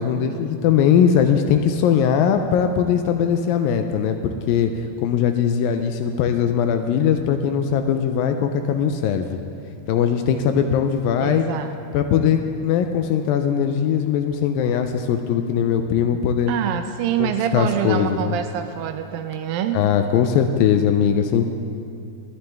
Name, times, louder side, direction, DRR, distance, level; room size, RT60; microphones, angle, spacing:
voice 1, 0.0-4.7 5.0-9.4 9.9-11.5 11.9-16.5 17.2-18.4 19.7-21.5, left 8 dB, 80° left, 7 dB, 2.1 m, -20 dB
voice 2, 11.2-11.7 16.5-19.8, right 10 dB, 80° right, 7 dB, 2.1 m, -25 dB
21.0 x 10.5 x 3.5 m, 2.6 s
omnidirectional pair, 4.6 m